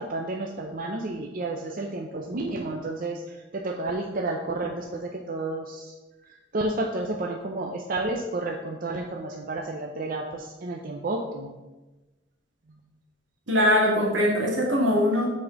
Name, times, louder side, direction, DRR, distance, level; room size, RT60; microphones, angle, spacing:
voice 1, 0.0-5.9 6.3-11.5 15.1-15.2, right 2 dB, 50° right, 1 dB, 0.6 m, -31 dB
voice 2, 13.5-15.3, left 1 dB, 80° right, -3 dB, 2.1 m, -21 dB
6.2 x 4.2 x 5.8 m, 1.1 s
head